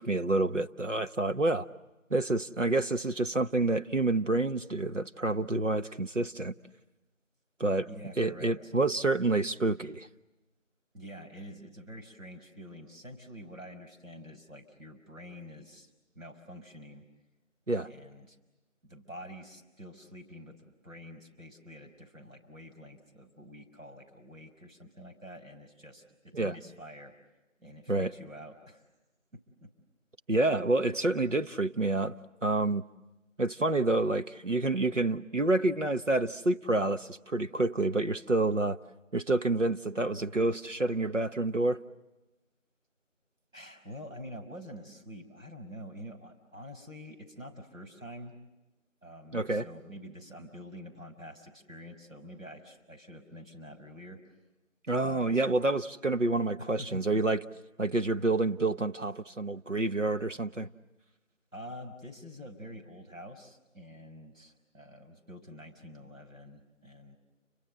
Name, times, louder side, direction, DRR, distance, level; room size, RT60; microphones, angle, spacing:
voice 1, 0.0-1.7 2.1-6.5 7.6-7.9 8.2-10.1 17.7-17.9 26.3-26.5 27.9-28.1 30.3-32.2 32.4-32.8 33.4-38.8 39.1-41.8 49.3-49.7 54.9-57.4 57.8-60.7, right 2 dB, 70° right, 1.3 m, -28 dB
voice 2, 7.8-8.7 10.9-17.0 17.8-18.4 18.8-27.1 27.6-28.8 29.6-29.7 43.5-48.4 49.0-54.2 55.0-55.5 56.6-57.0 61.5-67.2, equal, 90° right, 6.1 m, -47 dB
30.0 x 25.0 x 7.8 m
figure-of-eight pair, 180°, 39 cm